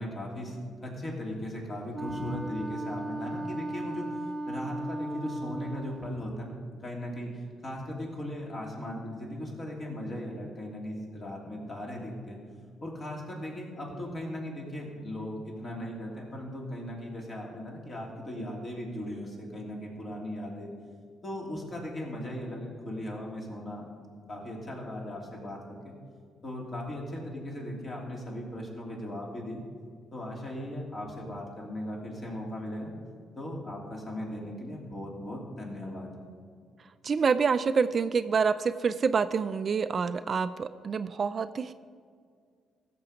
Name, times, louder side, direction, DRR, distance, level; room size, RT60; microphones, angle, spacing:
voice 1, 0.0-4.0 4.5-6.5 6.8-12.4 12.8-20.7 21.2-23.8 24.3-25.9 26.4-29.6 30.1-32.9 33.4-36.1, left 1 dB, 35° left, -1 dB, 3.0 m, -38 dB
Wind instrument woodwind instrument, 1.9-6.2, right 1 dB, 15° right, 0.7 m, -36 dB
voice 2, 37.0-41.7, right 5 dB, 45° right, 12 dB, 0.4 m, -27 dB
16.0 x 6.8 x 5.1 m, 2.1 s
cardioid pair, 90°, 0 cm